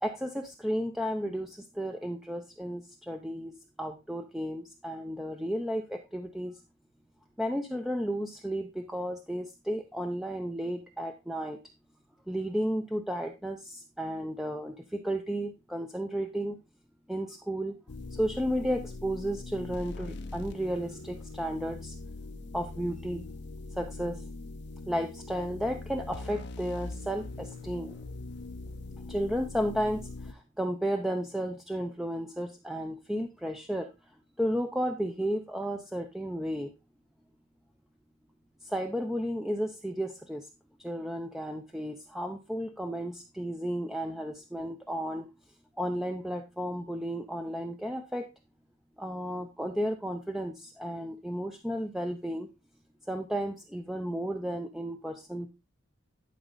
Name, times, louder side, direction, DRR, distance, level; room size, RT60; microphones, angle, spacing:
voice 1, 0.0-6.6 7.4-11.6 12.3-16.6 17.1-17.8 18.1-21.9 22.5-23.2 23.7-24.2 24.9-28.0 29.1-33.9 34.4-36.7 38.6-40.5 40.8-45.3 45.8-48.3 49.0-52.5 53.1-55.5, equal, ahead, 4 dB, 0.6 m, -33 dB
sound 1, 17.9-30.3, left 2 dB, 60° left, 0.7 m, -42 dB
11.0 x 5.0 x 3.9 m, 0.26 s
head